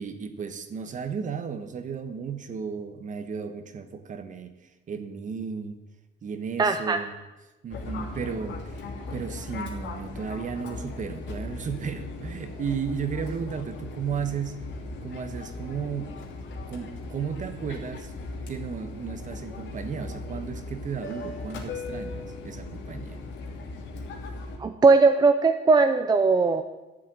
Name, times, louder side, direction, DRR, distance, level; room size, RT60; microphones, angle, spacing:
voice 1, 0.0-4.5 4.9-5.8 6.2-7.2 7.6-8.8 9.1-14.6 15.0-16.2 16.7-18.1 18.5-23.2, right 6 dB, 45° right, 9 dB, 1.3 m, -34 dB
voice 2, 6.6-7.0 24.6-26.6, right 4 dB, 20° right, 7 dB, 0.6 m, -19 dB
Fixed-wing aircraft airplane, 7.7-24.6, left 2 dB, 80° left, 2.7 m, -38 dB
13.0 x 7.5 x 10.0 m, 1.1 s
cardioid pair, 160°, 19 cm